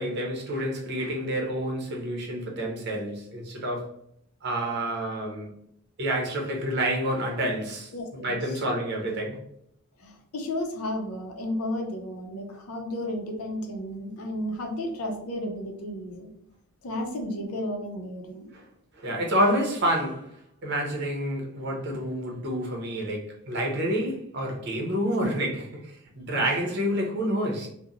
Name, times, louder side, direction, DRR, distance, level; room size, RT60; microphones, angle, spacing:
voice 1, 0.0-3.9 4.4-5.6 6.0-9.4 18.5-18.6 19.0-20.3 20.6-27.7, right 1 dB, 50° right, 0.7 m, -28 dB
voice 2, 7.9-8.4 10.0-16.3 16.8-18.5, left 1 dB, 80° left, 0.6 m, -33 dB
2.9 x 2.1 x 2.4 m
head